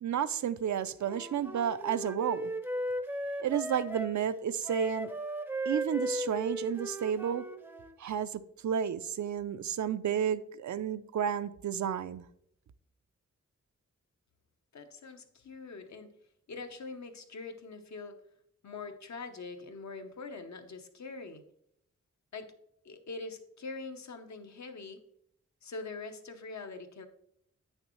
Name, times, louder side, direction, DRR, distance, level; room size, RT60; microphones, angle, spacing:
voice 1, 0.0-2.5 3.4-5.1 5.7-7.4 8.0-12.2, right 8 dB, 75° right, 12 dB, 0.5 m, -31 dB
Wind instrument woodwind instrument, 1.0-4.2 4.6-8.0, right 1 dB, 5° right, 0.5 m, -36 dB
voice 2, 14.7-16.1 16.5-18.2 18.6-21.4 22.3-22.5 22.8-25.0 25.6-27.1, left 3 dB, 65° left, 6 dB, 0.9 m, -43 dB
8.8 x 6.5 x 3.1 m, 0.73 s
wide cardioid pair, 140°, 30 cm